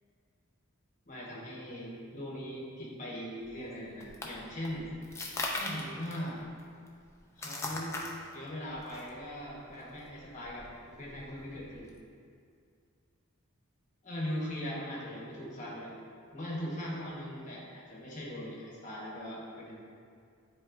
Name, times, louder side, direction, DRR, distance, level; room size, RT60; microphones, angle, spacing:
voice 1, 1.1-4.9 5.6-6.4 7.4-8.0 8.3-11.9 14.0-16.0 16.3-19.8, equal, 35° left, -4 dB, 1.2 m, -40 dB
sound 1, 3.4-12.0, left 2 dB, 10° left, 0.5 m, -41 dB
9.6 x 4.2 x 2.5 m, 2.3 s
head